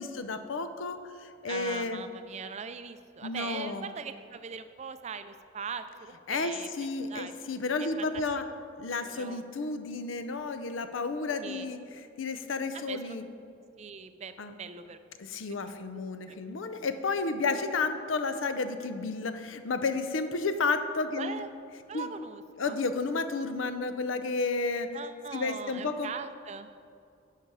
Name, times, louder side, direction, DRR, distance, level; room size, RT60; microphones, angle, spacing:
voice 1, 0.0-2.0 3.2-3.9 6.3-8.5 8.8-11.8 12.2-13.2 14.4-14.5 15.2-21.4 21.9-22.1 22.6-24.9 25.3-26.1, left 3 dB, 80° left, 9 dB, 0.6 m, -32 dB
voice 2, 1.5-7.3 7.8-8.2 9.0-9.4 11.4-11.7 12.7-13.2 13.8-15.0 15.7-15.8 16.3-16.4 21.2-21.5 21.9-22.8 24.9-26.7, right 6 dB, 35° right, 10 dB, 0.4 m, -41 dB
10.0 x 5.6 x 4.8 m, 2.4 s
head